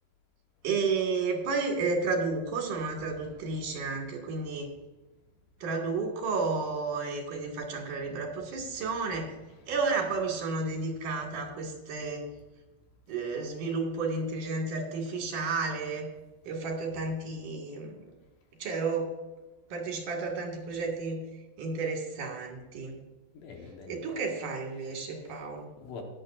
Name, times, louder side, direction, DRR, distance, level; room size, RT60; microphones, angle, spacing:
voice 1, 0.6-4.7 5.6-9.3 9.7-12.2 13.1-16.1 16.5-17.9 18.6-19.1 19.7-21.2 21.6-23.0 23.9-25.7, right 4 dB, 65° right, 0 dB, 3.6 m, -32 dB
voice 2, 3.0-4.0 7.7-7.8 8.7-9.9 10.5-10.6 23.3-24.2 24.7-25.5 25.8-26.0, left 4 dB, 70° left, 2 dB, 2.8 m, -49 dB
16.0 x 11.0 x 2.5 m, 1.1 s
omnidirectional pair, 4.1 m